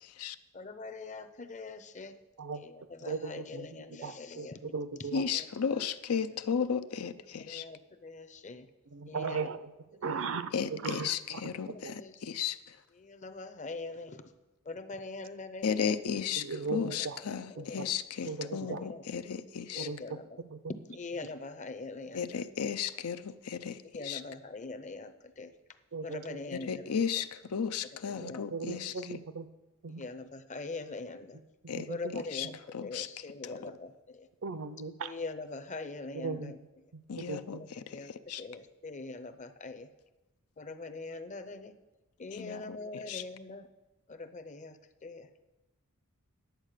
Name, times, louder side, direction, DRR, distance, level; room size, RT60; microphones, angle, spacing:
voice 1, 0.5-2.1 2.6-4.7 5.2-5.8 7.4-8.6 9.1-9.5 11.9-12.1 13.0-14.2 14.7-16.0 16.8-17.3 17.5-17.9 18.4-19.0 19.7-20.4 20.9-22.4 23.8-25.5 26.0-27.0 28.1-29.0 30.0-31.4 31.9-34.3 35.0-36.6 37.5-38.1 38.4-39.9 40.6-41.7 42.2-43.7 44.1-44.8 45.0-45.3, left 3 dB, 35° left, 9 dB, 0.7 m, -43 dB
voice 2, 3.0-5.2 8.9-9.7 10.0-11.4 11.7-11.9 16.4-17.2 17.6-17.9 18.3-18.8 19.8-20.6 25.9-26.4 28.2-29.5 29.8-30.0 31.3-31.4 31.7-32.5 34.4-35.1 36.1-36.5 37.2-37.6, right 4 dB, 60° right, 12 dB, 0.6 m, -38 dB
voice 3, 5.1-7.6 10.5-12.6 15.6-19.9 22.1-24.2 26.5-28.9 31.7-31.9 32.1-32.5 32.7-33.1 33.4-33.6 37.1-37.6 37.9-38.0 38.3-38.4 42.3-43.2, left 7 dB, 80° left, 11 dB, 0.6 m, -34 dB
10.5 x 8.2 x 6.6 m, 1.1 s
head